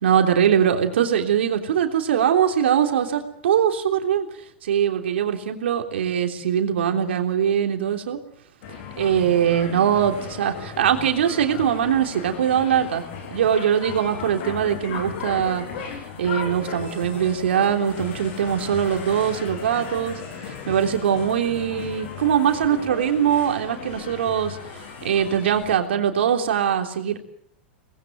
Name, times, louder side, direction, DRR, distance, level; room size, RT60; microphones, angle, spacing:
voice 1, 0.0-4.3 4.6-8.2 9.0-13.0 13.3-15.6 16.2-24.6 25.0-27.2, right 9 dB, 80° right, 4 dB, 3.4 m, -22 dB
sound 1, 8.6-25.8, left 6 dB, 60° left, 6.7 m, -36 dB
24.5 x 20.5 x 8.1 m, 0.67 s
hypercardioid pair, 105°, 6 cm